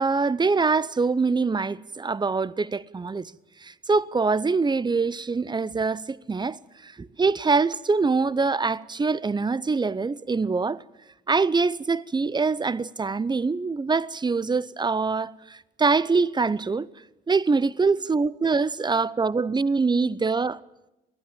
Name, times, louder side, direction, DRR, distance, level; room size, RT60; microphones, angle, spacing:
voice 1, 0.0-3.3 3.6-10.8 11.3-16.9 17.3-20.6, right 4 dB, 20° right, 0.7 m, -24 dB
22.5 x 15.0 x 9.1 m
cardioid pair, 90°, 20 cm